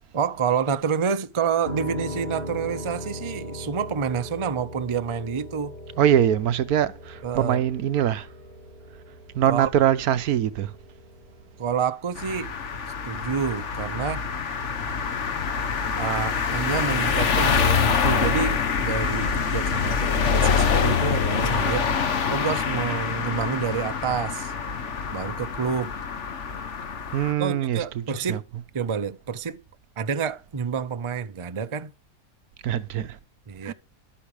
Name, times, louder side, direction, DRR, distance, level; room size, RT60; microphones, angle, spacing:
voice 1, 0.1-5.7 7.2-7.6 9.5-9.7 11.6-12.5 13.0-14.2 16.0-24.5 25.1-25.9 27.4-28.4 28.7-29.6 30.0-31.9 33.5-33.7, right 6 dB, 30° right, 0.6 m, -28 dB
Piano, 1.6-11.8, left 1 dB, 30° left, 2.6 m, -39 dB
voice 2, 6.0-8.3 9.3-10.7 27.1-28.4 32.6-33.2 33.6-33.7, right 10 dB, 80° right, 1.3 m, -23 dB
sound 1, 12.2-27.3, left 6 dB, 55° left, 1.4 m, -25 dB
12.5 x 8.7 x 4.9 m
omnidirectional pair, 1.6 m